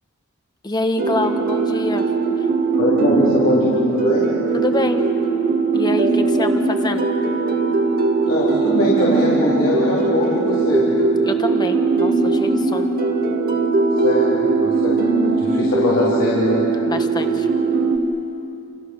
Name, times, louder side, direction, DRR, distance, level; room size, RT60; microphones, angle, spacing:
voice 1, 0.6-2.0 2.4-2.5 4.5-5.1 5.7-7.1 11.2-12.9 16.8-17.5, left 2 dB, 20° left, 6 dB, 1.6 m, -26 dB
sound 1, 1.0-18.0, right 3 dB, 45° right, 1.8 m, -19 dB
voice 2, 2.8-4.2 8.3-10.9 14.0-15.0 15.4-16.6, left 1 dB, 70° left, -8 dB, 4.4 m, -21 dB
29.0 x 29.0 x 6.5 m, 2.8 s
head